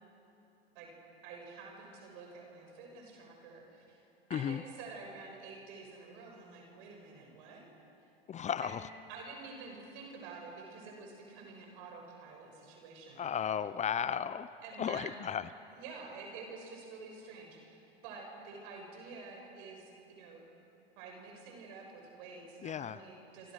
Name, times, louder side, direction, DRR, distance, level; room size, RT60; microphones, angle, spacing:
voice 1, 1.2-4.0 4.3-7.6 8.6-8.8 9.1-13.3 14.6-15.1 15.7-20.4 21.0-23.5, right 4 dB, 60° right, 1 dB, 6.7 m, -49 dB
voice 2, 4.3-4.6 8.3-8.8 13.2-14.5 14.8-15.4 22.6-23.0, left 8 dB, 25° left, 15 dB, 0.6 m, -34 dB
28.0 x 25.0 x 6.5 m, 2.8 s
hypercardioid pair, 95°, 30 cm